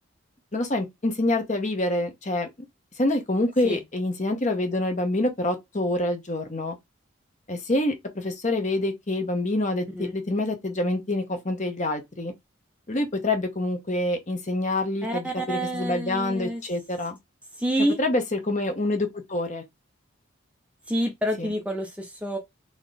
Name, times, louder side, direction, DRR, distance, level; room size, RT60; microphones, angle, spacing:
voice 1, 0.5-2.5 3.0-6.8 7.5-12.3 12.9-17.2 18.0-19.6 21.4-21.5, left 2 dB, 35° left, 1.0 m, -26 dB
voice 2, 15.0-16.6 17.6-18.0 20.9-22.4, right 1 dB, 5° right, 0.7 m, -28 dB
4.0 x 3.0 x 3.4 m
head